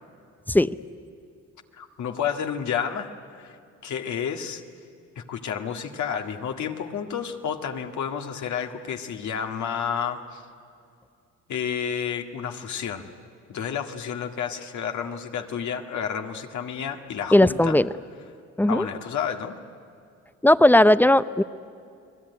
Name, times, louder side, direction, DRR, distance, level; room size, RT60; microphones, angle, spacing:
voice 1, 1.7-3.6 3.8-4.6 5.2-10.4 11.5-13.1 13.5-17.8 18.7-19.6, left 7 dB, 70° left, 5 dB, 2.0 m, -30 dB
voice 2, 17.3-17.9 18.6-18.9 20.4-21.4, left 1 dB, 5° left, 15 dB, 0.6 m, -17 dB
29.5 x 20.0 x 9.6 m, 2.4 s
cardioid pair, 90°, 30 cm